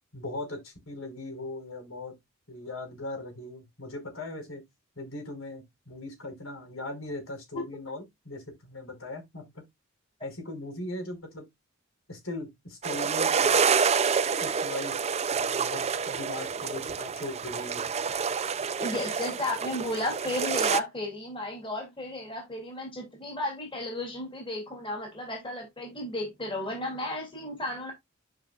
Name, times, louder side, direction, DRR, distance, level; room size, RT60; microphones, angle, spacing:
voice 1, 0.1-2.1 2.5-4.6 5.0-9.6 10.2-11.5 12.1-13.9 14.4-15.0 15.3-17.8, left 2 dB, 85° left, 5.6 m, -39 dB
sound 1, 12.8-20.8, right 6 dB, 30° right, 0.5 m, -28 dB
voice 2, 18.8-27.9, left 1 dB, 25° left, 3.1 m, -34 dB
11.5 x 5.7 x 2.4 m
head